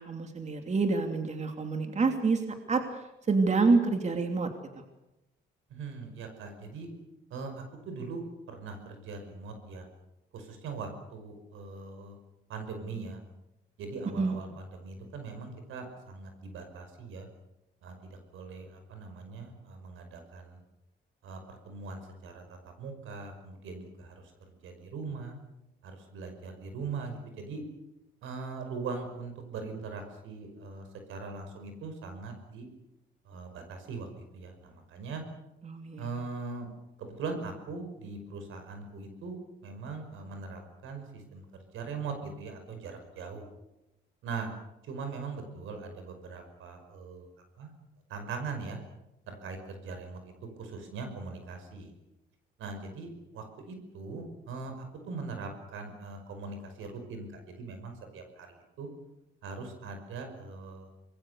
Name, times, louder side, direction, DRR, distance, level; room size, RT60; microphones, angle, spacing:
voice 1, 0.0-2.4 2.7-2.8 3.3-4.5 14.2-14.4 35.6-36.0, right 4 dB, 35° right, 5 dB, 2.9 m, -27 dB
voice 2, 5.7-6.9 7.3-9.9 10.3-12.2 12.5-13.2 13.8-17.3 17.8-20.6 21.2-25.3 25.8-27.6 28.2-32.7 33.3-35.2 36.0-36.7 37.0-41.4 41.7-43.5 44.2-44.6 44.8-47.3 47.6-47.7 48.1-48.8 49.3-50.3 50.6-51.9 52.6-58.5 58.8-58.9 59.4-60.9, right 4 dB, 85° right, 6 dB, 5.6 m, -41 dB
25.5 x 21.5 x 6.9 m, 0.92 s
cardioid pair, 90°, 20 cm